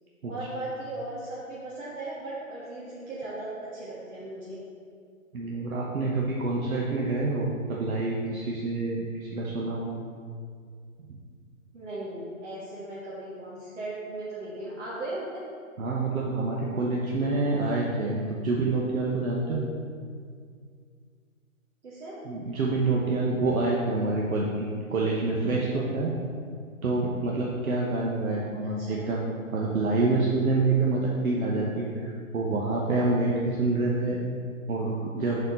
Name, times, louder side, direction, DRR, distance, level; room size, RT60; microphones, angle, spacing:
voice 1, 0.2-4.6 11.7-15.4 21.8-22.2 28.8-29.0, right 2 dB, 60° right, -8 dB, 1.7 m, -37 dB
voice 2, 5.3-9.9 11.1-11.2 15.8-19.6 22.2-26.1 26.8-29.2 29.5-34.2 34.7-35.4, right 3 dB, 80° right, -3 dB, 1.2 m, -27 dB
6.7 x 4.3 x 5.2 m, 2.2 s
hypercardioid pair, 175°, 41 cm